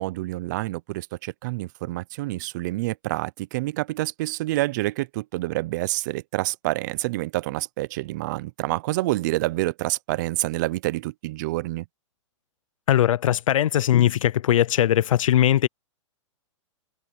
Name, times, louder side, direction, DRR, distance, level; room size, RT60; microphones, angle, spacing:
voice 1, 0.0-11.8, right 19 dB, 35° right, 0.6 m, -28 dB
voice 2, 12.9-15.7, left 11 dB, 85° left, 0.6 m, -20 dB
hypercardioid pair, 160°, 17 cm